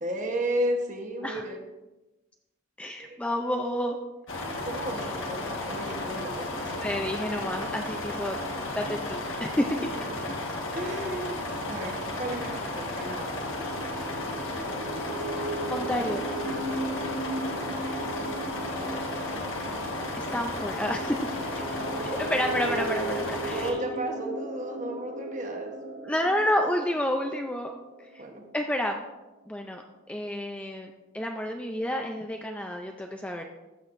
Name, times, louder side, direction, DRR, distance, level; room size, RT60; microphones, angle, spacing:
voice 1, 0.0-1.6 3.0-3.2 4.7-6.7 9.8-13.4 17.4-17.7 18.7-19.6 21.6-22.4 23.4-25.8 28.2-28.5, right 1 dB, 40° right, 3 dB, 1.1 m, -34 dB
voice 2, 2.8-4.0 6.5-8.4 8.8-9.7 15.7-16.2 20.2-21.2 21.4-21.5 22.3-23.8 26.1-27.7 28.1-28.2 28.5-29.0 29.5-29.8 30.1-33.4, equal, 5° left, 3 dB, 0.4 m, -30 dB
sound 1, 4.3-23.7, left 2 dB, 85° left, 1.4 m, -34 dB
sound 2, 12.9-28.5, right 2 dB, 85° right, 1.7 m, -37 dB
14.5 x 6.2 x 2.6 m, 1.0 s
head